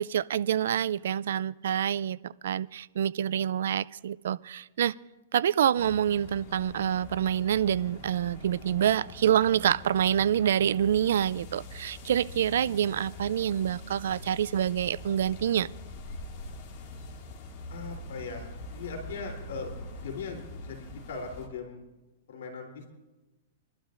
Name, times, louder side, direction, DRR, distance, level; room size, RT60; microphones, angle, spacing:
voice 1, 0.0-4.9 5.3-15.7, right 10 dB, 75° right, 0.3 m, -27 dB
sound 1, 5.8-21.5, left 2 dB, 45° left, 2.0 m, -44 dB
voice 2, 17.7-19.7 20.0-21.8 22.3-22.9, left 4 dB, 75° left, 3.2 m, -39 dB
27.5 x 12.0 x 2.5 m
hypercardioid pair, 150°, 0 cm